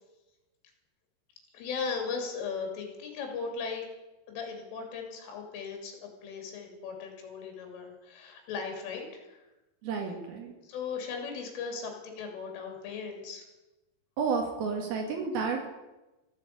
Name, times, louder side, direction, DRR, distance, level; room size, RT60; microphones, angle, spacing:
voice 1, 1.5-3.9 4.3-9.4 10.6-13.4, left 5 dB, 75° left, 2 dB, 5.4 m, -37 dB
voice 2, 9.8-10.5 14.2-15.7, right 5 dB, 60° right, 2 dB, 3.1 m, -31 dB
14.5 x 10.5 x 8.5 m, 1.1 s
omnidirectional pair, 5.7 m